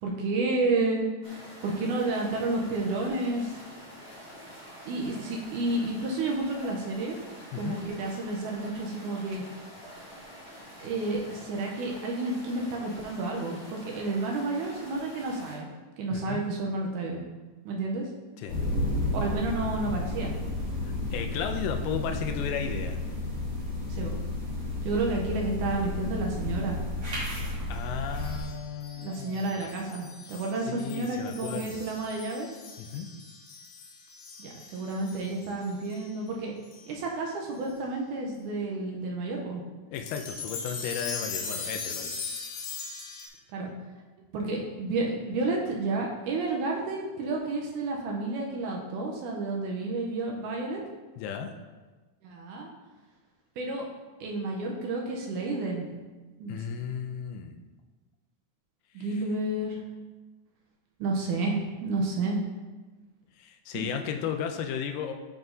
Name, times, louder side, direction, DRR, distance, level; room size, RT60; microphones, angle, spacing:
voice 1, 0.0-3.6 4.9-7.2 7.5-9.4 10.8-15.7 16.0-17.2 17.7-18.1 19.1-20.3 23.9-24.2 24.8-26.8 29.0-32.5 34.4-36.5 36.9-39.6 43.5-43.7 44.3-50.8 52.2-52.7 53.6-53.9 54.2-55.9 56.4-56.5 58.9-59.8 61.0-62.4 63.7-64.0, right 2 dB, 80° right, 0 dB, 2.2 m, -31 dB
sound 1, 1.2-15.6, equal, 5° right, 1.2 m, -47 dB
voice 2, 16.1-16.4 18.4-18.6 20.8-23.0 27.7-29.7 30.7-31.9 32.8-33.1 39.9-42.2 51.2-51.5 56.5-57.6 59.0-59.2 63.4-65.1, left 7 dB, 90° left, 5 dB, 2.2 m, -34 dB
sound 2, 18.5-28.4, left 1 dB, 45° right, 2.8 m, -32 dB
sound 3, 28.2-36.1 36.7-36.9 37.7-37.8 39.9-43.3, left 4 dB, 75° left, 2.3 m, -40 dB
9.2 x 4.9 x 2.7 m, 1.2 s
omnidirectional pair, 3.7 m